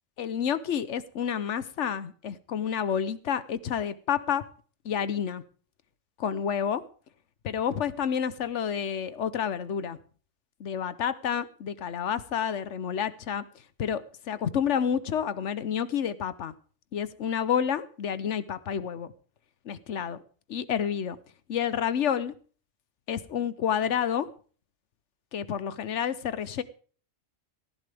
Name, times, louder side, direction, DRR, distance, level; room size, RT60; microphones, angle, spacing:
voice 1, 0.2-4.5 4.8-5.4 6.2-6.8 7.4-10.0 10.6-16.5 16.9-19.1 19.6-20.2 20.5-21.2 21.5-22.3 23.1-24.3 25.3-26.6, left 8 dB, 80° left, 15 dB, 1.2 m, -29 dB
18.5 x 14.0 x 3.5 m, 0.42 s
omnidirectional pair, 1.2 m